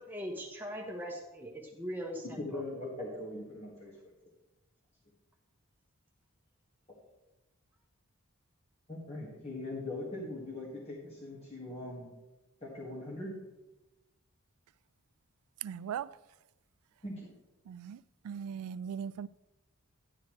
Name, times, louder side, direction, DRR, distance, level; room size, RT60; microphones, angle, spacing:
voice 1, 0.0-2.6, equal, 10° right, 1.0 m, -40 dB
voice 2, 2.4-3.9 8.9-12.1 12.6-13.4 17.0-17.3, left 2 dB, 30° left, 1.8 m, -41 dB
voice 3, 15.6-16.2 17.7-19.3, right 8 dB, 80° right, 0.3 m, -39 dB
12.0 x 9.4 x 3.2 m
head